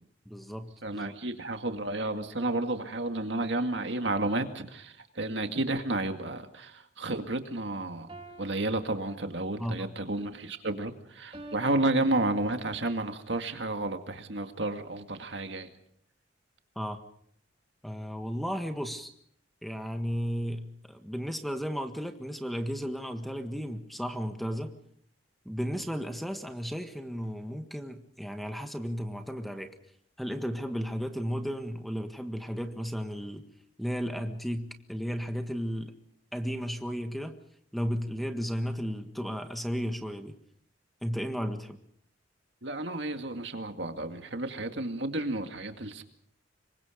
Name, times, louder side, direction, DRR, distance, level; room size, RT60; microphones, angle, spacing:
voice 1, 0.2-1.1 9.6-9.9 16.7-17.0 17.8-19.1 19.6-24.7 25.4-29.7 30.2-33.4 33.8-35.9 36.3-37.4 37.7-40.3 41.0-41.8, equal, ahead, 6 dB, 1.6 m, -34 dB
voice 2, 0.8-8.1 8.4-15.7 42.6-46.0, right 2 dB, 65° right, 6 dB, 2.2 m, -31 dB
sound 1, 8.1-9.7 11.3-12.8, right 1 dB, 30° right, 3.0 m, -48 dB
26.5 x 23.5 x 5.2 m, 0.68 s
head